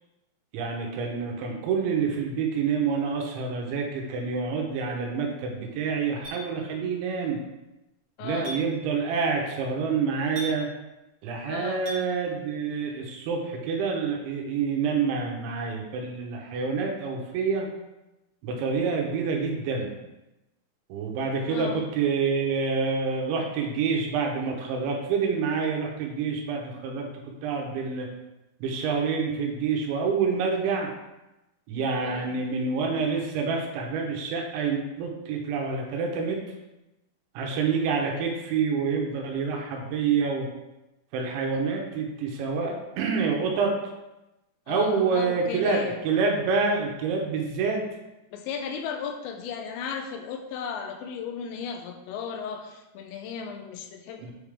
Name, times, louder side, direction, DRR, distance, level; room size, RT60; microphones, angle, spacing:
voice 1, 0.5-7.4 8.2-10.7 11.2-17.7 18.4-19.9 20.9-27.1 27.4-28.1 28.6-30.9 31.7-36.4 37.4-40.5 41.1-43.7 44.7-47.8 54.2-54.3, right 5 dB, 85° right, 1 dB, 3.4 m, -27 dB
Chink clink, 6.2-6.4 8.4-8.6 10.4-10.5 11.9-12.0, right 1 dB, 35° right, 3.2 m, -35 dB
voice 2, 8.2-8.6 11.5-11.9 21.5-21.9 32.0-32.4 44.7-46.0 48.3-54.3, left 6 dB, 85° left, 4 dB, 2.9 m, -35 dB
8.8 x 5.1 x 3.5 m, 0.98 s
omnidirectional pair, 5.3 m